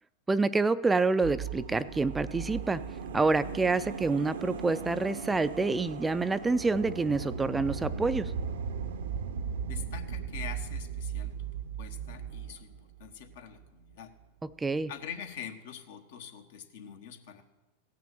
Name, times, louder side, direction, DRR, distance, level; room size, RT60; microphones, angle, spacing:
voice 1, 0.3-2.8 3.1-8.3 14.6-14.9, right 3 dB, 15° right, 14 dB, 0.4 m, -27 dB
sound 1, 1.2-13.6 13.9-14.0, right 6 dB, 75° right, 0.8 m, -37 dB
voice 2, 9.7-12.7 13.0-14.1 14.9-17.4, left 8 dB, 70° left, 6 dB, 1.3 m, -44 dB
16.0 x 6.0 x 7.7 m, 1.1 s
hypercardioid pair, 100°, 0 cm